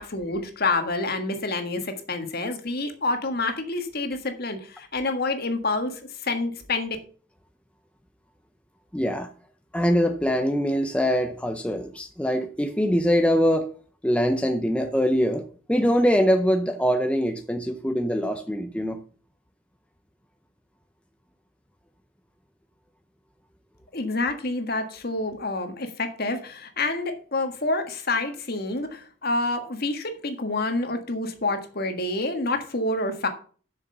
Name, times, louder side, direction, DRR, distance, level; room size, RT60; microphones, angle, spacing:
voice 1, 0.0-7.0 23.9-33.3, left 2 dB, 50° left, 1.7 m, -28 dB
voice 2, 8.9-9.3 9.7-13.7 14.0-19.0, equal, 5° left, 0.6 m, -23 dB
7.7 x 6.5 x 6.7 m
head